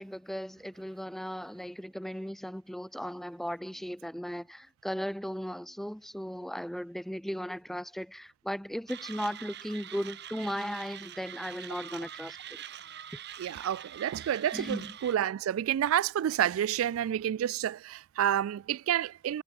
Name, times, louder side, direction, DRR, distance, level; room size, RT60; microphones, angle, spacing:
voice 1, 0.0-12.6 14.5-14.9, equal, ahead, 0.7 m, -37 dB
Mechanisms, 8.9-15.2, right 10 dB, 55° right, 1.6 m, -45 dB
voice 2, 13.4-19.4, right 10 dB, 85° right, 0.3 m, -29 dB
head